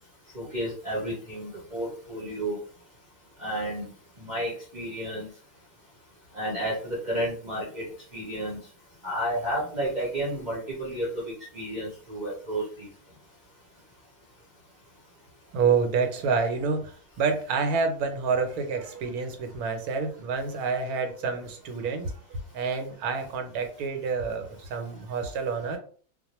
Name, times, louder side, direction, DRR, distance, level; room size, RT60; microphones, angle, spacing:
voice 1, 0.3-2.6 3.4-3.9 4.2-5.3 6.3-7.9 8.1-8.6 9.0-12.9, right 1 dB, 40° right, -5 dB, 0.7 m, -31 dB
voice 2, 15.5-25.8, right 5 dB, 80° right, 6 dB, 1.1 m, -28 dB
2.3 x 2.1 x 2.9 m, 0.43 s
omnidirectional pair, 1.6 m